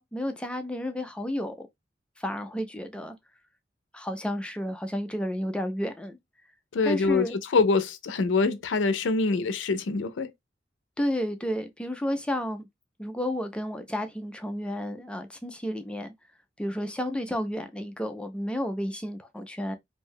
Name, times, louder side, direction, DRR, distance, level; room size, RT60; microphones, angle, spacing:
voice 1, 0.0-1.7 2.2-3.1 3.9-6.2 6.8-7.4 11.0-12.7 13.0-16.1 16.6-19.8, equal, 5° left, 0.4 m, -31 dB
voice 2, 6.7-7.3 7.5-10.3, left 4 dB, 85° left, 0.4 m, -24 dB
2.6 x 2.2 x 3.4 m
head